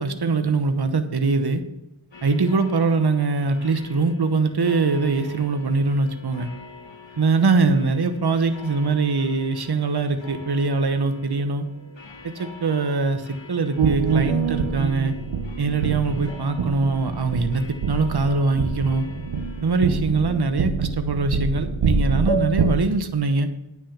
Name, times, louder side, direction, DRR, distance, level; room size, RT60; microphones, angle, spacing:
voice 1, 0.0-1.6 2.2-6.5 7.2-11.7 12.2-15.1 15.6-19.1 19.6-23.5, right 3 dB, 50° right, 8 dB, 1.1 m, -22 dB
sound 1, 2.1-20.0, left 3 dB, 65° left, 1.5 m, -45 dB
sound 2, 13.8-22.8, right 4 dB, 70° right, 0.8 m, -25 dB
9.3 x 6.1 x 7.3 m, 0.87 s
wide cardioid pair, 50°, 49 cm